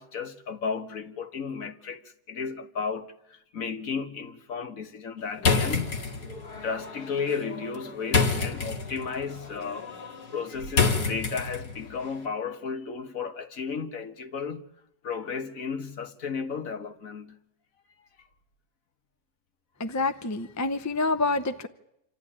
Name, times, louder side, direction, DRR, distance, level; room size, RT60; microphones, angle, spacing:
voice 1, 0.0-5.9 6.5-9.9 10.3-14.6 15.0-17.4, left 5 dB, 60° left, 1.7 m, -34 dB
sound 1, 5.4-11.9, left 5 dB, 85° left, 2.8 m, -28 dB
voice 2, 19.8-21.7, left 3 dB, 15° left, 0.6 m, -27 dB
27.0 x 13.5 x 10.0 m
omnidirectional pair, 1.7 m